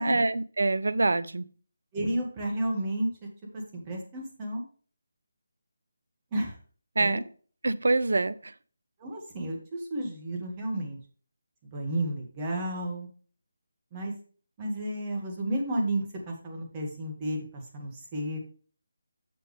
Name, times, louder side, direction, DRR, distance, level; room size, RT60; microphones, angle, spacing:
voice 1, 0.0-1.4 7.0-7.2 7.6-8.5, right 2 dB, 70° right, 0.6 m, -25 dB
voice 2, 1.9-3.1 3.5-4.6 6.3-6.5 7.0-7.2 9.0-11.0 11.7-13.1 13.9-14.1 14.6-18.4, right 1 dB, 25° right, 2.2 m, -32 dB
7.3 x 6.8 x 3.5 m
figure-of-eight pair, 155°, 0 cm